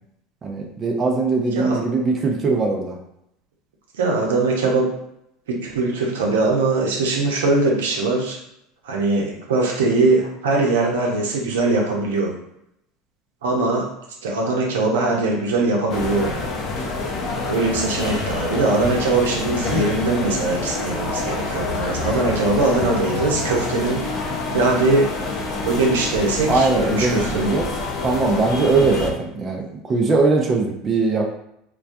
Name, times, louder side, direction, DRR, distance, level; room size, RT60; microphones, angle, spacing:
voice 1, 0.4-2.9 26.5-27.7 28.0-31.4, right 3 dB, 30° right, 0 dB, 0.5 m, -20 dB
voice 2, 4.0-4.9 5.5-8.4 8.8-12.3 13.4-13.9 14.2-16.4 17.5-24.1 24.5-25.1 25.6-27.6, right 3 dB, 85° right, -1 dB, 0.6 m, -21 dB
sound 1, 15.9-29.1, left 3 dB, 45° left, 0.5 m, -27 dB
2.2 x 2.2 x 2.6 m, 0.77 s
hypercardioid pair, 95°, 0 cm